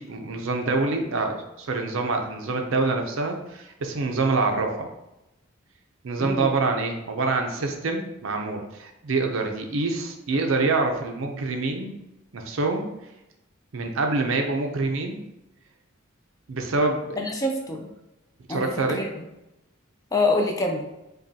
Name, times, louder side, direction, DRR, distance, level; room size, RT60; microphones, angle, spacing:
voice 1, 0.0-4.9 6.0-11.9 12.3-12.9 13.7-15.2 16.5-17.2 18.5-19.0, right 3 dB, 65° right, 3 dB, 0.5 m, -26 dB
voice 2, 17.2-17.9 18.5-19.1 20.1-20.8, left 2 dB, 15° left, 1 dB, 0.4 m, -25 dB
5.1 x 2.3 x 2.7 m, 0.93 s
head